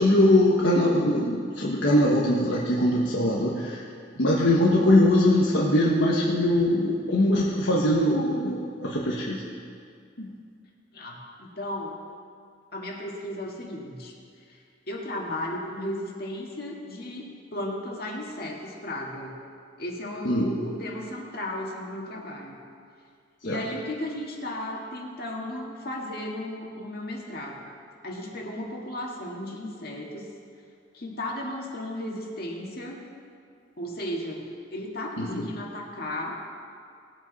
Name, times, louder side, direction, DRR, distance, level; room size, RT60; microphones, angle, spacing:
voice 1, 0.0-3.9 4.2-9.4 10.2-10.3 20.2-20.5 23.4-23.6 35.2-35.5, left 1 dB, 75° left, -5 dB, 1.3 m, -22 dB
voice 2, 10.9-12.0 12.7-14.1 14.5-19.3 19.8-22.6 23.4-27.7 28.0-30.3 30.9-33.0 33.8-34.4 34.7-36.5, left 1 dB, 55° left, -1 dB, 1.9 m, -35 dB
19.5 x 8.0 x 4.1 m, 2.2 s
head